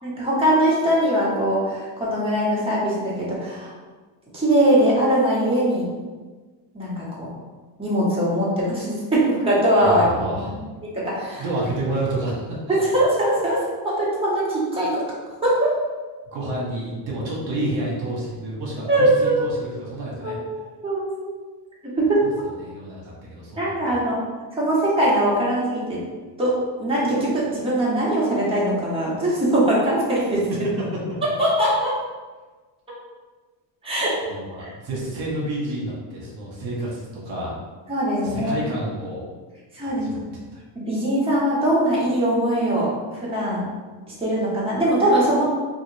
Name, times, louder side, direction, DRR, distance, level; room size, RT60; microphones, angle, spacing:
voice 1, 0.0-3.7 4.3-5.9 6.7-7.3 7.8-10.1 10.9-11.4 12.7-15.0 15.4-15.7 18.9-19.4 20.2-20.4 20.8-21.3 21.9-22.2 23.6-24.2 24.5-26.0 26.4-30.5 31.4-31.9 33.8-34.1 34.6-34.7 37.9-38.6 39.7-40.1 40.7-43.6 44.2-45.4, right 1 dB, 10° right, -8 dB, 1.3 m, -21 dB
voice 2, 9.8-10.6 11.4-12.6 16.3-20.4 22.2-22.3 22.6-24.0 30.9-31.2 34.3-37.5 38.2-39.2 39.8-40.2 40.5-40.6, right 1 dB, 65° right, -5 dB, 1.2 m, -29 dB
3.6 x 2.5 x 3.3 m, 1.3 s
cardioid pair, 105°, 49 cm